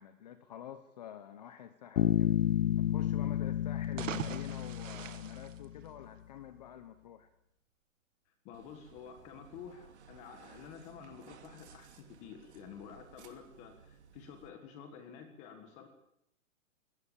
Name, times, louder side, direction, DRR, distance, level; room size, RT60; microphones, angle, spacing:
voice 1, 0.0-2.4 2.8-7.3, left 10 dB, 35° left, 11 dB, 1.1 m, -48 dB
Bass guitar, 2.0-5.7, left 11 dB, 75° left, 0.9 m, -31 dB
sound 1, 3.8-6.4, right 9 dB, 85° right, 1.5 m, -43 dB
voice 2, 8.4-15.9, left 7 dB, 15° left, 6 dB, 1.6 m, -50 dB
sound 2, 8.5-14.5, right 7 dB, 60° right, 2.8 m, -58 dB
22.5 x 18.0 x 7.1 m, 0.75 s
hypercardioid pair, 175°, 38 cm